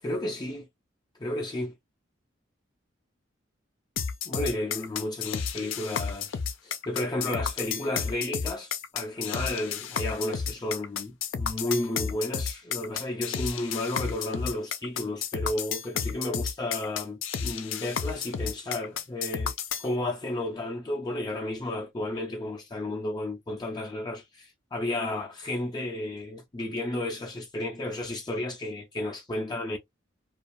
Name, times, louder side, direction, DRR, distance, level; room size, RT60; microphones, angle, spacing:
voice 1, 0.0-0.7 1.2-1.7 4.3-19.5 19.8-29.8, left 1 dB, 20° left, 0.4 m, -32 dB
sound 1, 4.0-19.9, left 7 dB, 75° left, 0.5 m, -32 dB
2.4 x 2.3 x 2.6 m
head